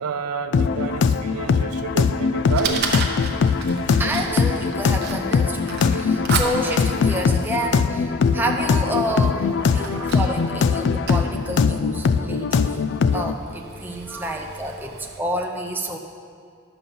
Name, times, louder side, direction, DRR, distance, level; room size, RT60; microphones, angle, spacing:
voice 1, 0.0-3.2 9.7-10.4 14.1-14.4, right 6 dB, 85° right, 9 dB, 0.5 m, -31 dB
sound 1, 0.5-13.3, left 5 dB, 50° left, 0.3 m, -21 dB
Fire, 1.7-15.2, right 5 dB, 45° right, 0.8 m, -35 dB
voice 2, 4.0-12.8 13.1-16.0, right 1 dB, 10° right, 2 dB, 0.6 m, -29 dB
11.0 x 7.0 x 5.4 m, 2.2 s
head